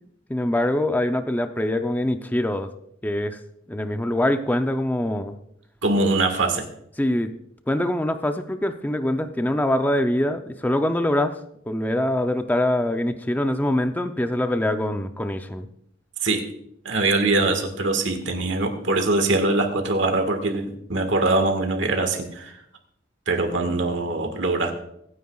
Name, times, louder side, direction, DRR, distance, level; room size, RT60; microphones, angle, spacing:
voice 1, 0.3-2.7 3.0-3.4 3.7-5.4 7.0-7.3 7.7-11.4 11.7-15.7, left 1 dB, 10° left, 7 dB, 0.5 m, -24 dB
voice 2, 5.8-6.7 16.2-16.4 16.8-22.6 23.3-24.7, right 2 dB, 75° right, 5 dB, 1.6 m, -22 dB
24.0 x 9.4 x 2.4 m, 0.71 s
head